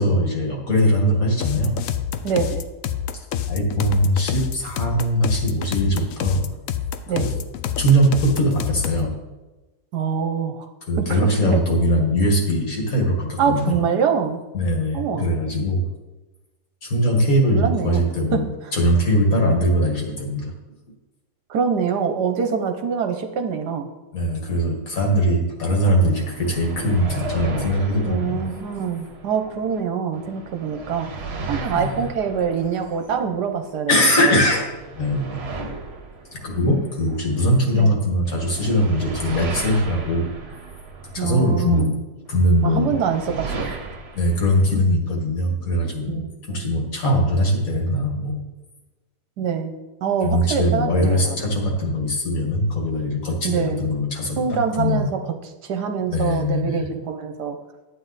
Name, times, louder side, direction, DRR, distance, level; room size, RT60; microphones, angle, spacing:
voice 1, 0.0-1.8 3.5-6.4 7.1-7.4 7.8-9.1 10.9-13.8 14.5-15.9 16.8-18.5 18.7-20.5 24.1-28.4 31.7-32.0 33.9-34.7 35.0-35.7 36.3-40.3 41.0-42.0 42.3-42.9 43.5-43.6 44.1-48.4 50.2-55.1 56.1-56.8, equal, 50° left, 1 dB, 2.1 m, -21 dB
sound 1, 1.4-9.1, left 9 dB, 75° left, 0.7 m, -27 dB
voice 2, 2.2-2.6 7.1-7.3 9.9-10.7 11.0-11.6 13.4-14.4 14.9-15.3 17.5-18.0 18.3-18.4 21.5-23.9 28.0-31.1 31.5-33.9 34.2-34.3 37.7-37.9 41.2-41.9 42.6-43.7 46.1-46.7 49.4-49.7 50.0-51.5 53.4-53.8 54.4-55.2 55.6-57.6, right 6 dB, 65° right, 6 dB, 1.2 m, -24 dB
sound 2, 26.1-29.8 30.1-33.8 34.2-37.8 38.2-41.8 42.3-44.8, right 3 dB, 40° right, 1.1 m, -35 dB
11.0 x 8.6 x 4.0 m, 1.2 s
omnidirectional pair, 2.0 m